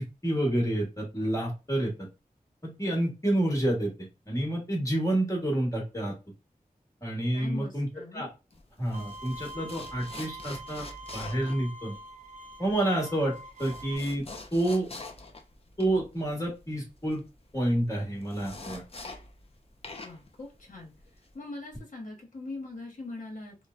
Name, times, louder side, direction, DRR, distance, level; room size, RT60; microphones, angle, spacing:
voice 1, 0.0-2.1 2.6-3.9 4.3-6.1 7.0-7.9 8.1-8.3 8.8-10.9 11.1-12.0 12.6-13.3 13.6-14.2 14.5-14.9 15.8-17.2 17.5-18.8, right 1 dB, 20° left, -2 dB, 1.2 m, -28 dB
voice 2, 7.3-8.3 20.0-20.9 21.3-23.6, left 2 dB, 55° left, -1 dB, 1.0 m, -41 dB
sound 1, 8.5-19.6 19.8-21.4, left 2 dB, 40° left, 0.5 m, -45 dB
Bowed string instrument, 8.9-14.0, right 1 dB, 60° right, 0.5 m, -44 dB
3.1 x 2.0 x 2.4 m, 0.28 s
wide cardioid pair, 65°, 15 cm